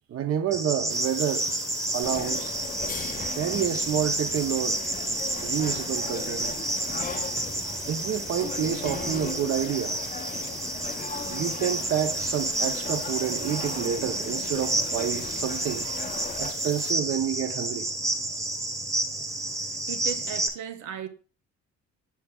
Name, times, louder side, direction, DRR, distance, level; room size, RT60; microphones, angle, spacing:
voice 1, 0.1-1.5 1.9-2.5 3.3-4.9 5.4-6.6 7.9-10.0 11.3-15.9 16.4-17.9, right 9 dB, 50° right, 0.6 m, -29 dB
Cricket, 0.5-20.5, right 2 dB, 10° right, 1.0 m, -30 dB
sound 1, 0.9-16.9, left 5 dB, 45° left, 0.9 m, -43 dB
sound 2, 2.0-16.5, left 5 dB, 30° left, 0.6 m, -39 dB
voice 2, 19.9-21.1, right 9 dB, 85° right, 0.7 m, -36 dB
7.1 x 5.9 x 2.3 m
cardioid pair, 90°, 30 cm